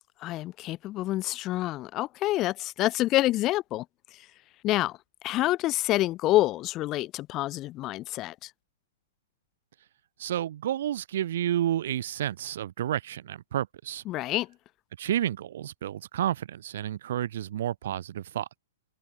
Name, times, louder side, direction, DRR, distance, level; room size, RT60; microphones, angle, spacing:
voice 1, 0.2-3.8 4.6-5.0 5.2-8.5 14.1-14.5, left 16 dB, 30° left, 0.4 m, -27 dB
voice 2, 10.2-14.0 15.0-18.6, right 11 dB, 60° right, 0.5 m, -30 dB
open air
figure-of-eight pair, 110°, 0 cm